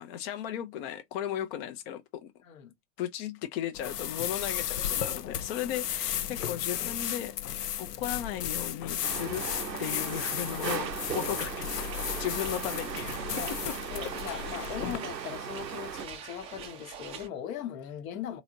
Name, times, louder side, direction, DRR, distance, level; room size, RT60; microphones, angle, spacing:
voice 1, 0.0-2.3 3.0-9.5 9.8-11.8 12.2-13.7 14.0-14.1 14.4-14.8, left 11 dB, 40° left, 0.6 m, -36 dB
voice 2, 2.4-2.7 13.3-13.5 13.9-18.4, left 9 dB, 55° left, 1.0 m, -39 dB
sound 1, 3.7-15.0, left 11 dB, 75° left, 0.6 m, -34 dB
sound 2, 9.0-16.1, right 7 dB, 90° right, 0.7 m, -37 dB
sound 3, 10.6-17.3, right 8 dB, 15° right, 0.4 m, -45 dB
3.9 x 2.9 x 2.7 m
figure-of-eight pair, 90°, 48 cm